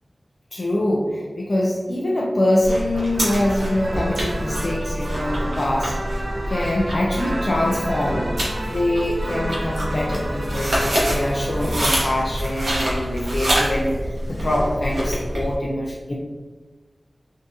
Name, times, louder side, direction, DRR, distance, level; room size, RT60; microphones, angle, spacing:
voice 1, 0.5-5.9 6.5-8.3 8.7-16.1, left 1 dB, 60° left, -3 dB, 0.4 m, -24 dB
sound 1, 2.6-15.6, equal, 90° right, 0.8 m, -26 dB
sound 2, 3.1-13.5, right 1 dB, 55° right, 0.7 m, -32 dB
3.7 x 2.7 x 2.5 m, 1.3 s
cardioid pair, 45°, 0 cm